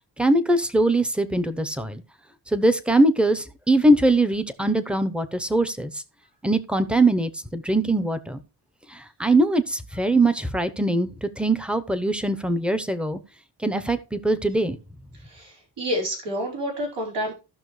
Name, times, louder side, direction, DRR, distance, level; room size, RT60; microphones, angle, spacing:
voice 1, 0.2-2.0 2.5-5.9 6.4-8.4 8.9-13.2 13.6-14.8, right 2 dB, 5° right, 11 dB, 0.8 m, -22 dB
voice 2, 15.1-17.3, equal, 85° right, -2 dB, 4.8 m, -29 dB
15.0 x 6.0 x 3.2 m, 0.30 s
wide cardioid pair, 125°, 42 cm